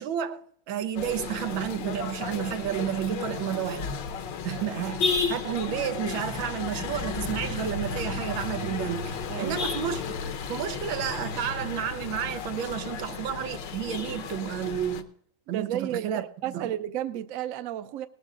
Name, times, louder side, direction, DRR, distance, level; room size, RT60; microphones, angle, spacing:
voice 1, 0.0-4.0 4.4-10.0 10.5-15.1 15.5-16.7, right 10 dB, 90° right, 1.6 m, -31 dB
sound 1, 1.0-15.0, left 5 dB, 70° left, 1.5 m, -33 dB
voice 2, 15.5-18.1, right 11 dB, 65° right, 0.8 m, -32 dB
19.0 x 13.5 x 2.5 m
omnidirectional pair, 2.1 m